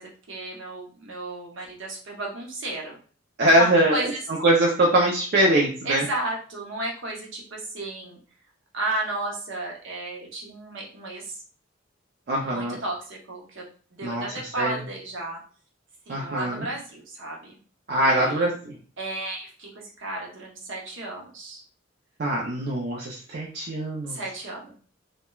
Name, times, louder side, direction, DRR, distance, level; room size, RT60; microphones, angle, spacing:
voice 1, 0.0-3.0 3.6-4.2 5.8-8.2 8.7-11.4 12.4-13.7 13.9-15.4 16.1-17.6 18.0-18.5 19.0-21.6 24.1-24.7, right 2 dB, 75° right, -1 dB, 0.8 m, -33 dB
voice 2, 3.4-4.1 4.4-6.1 12.3-12.8 14.0-14.7 16.1-16.7 17.9-18.7 22.2-24.2, right 1 dB, 55° right, -3 dB, 0.5 m, -22 dB
3.0 x 2.1 x 2.2 m, 0.41 s
head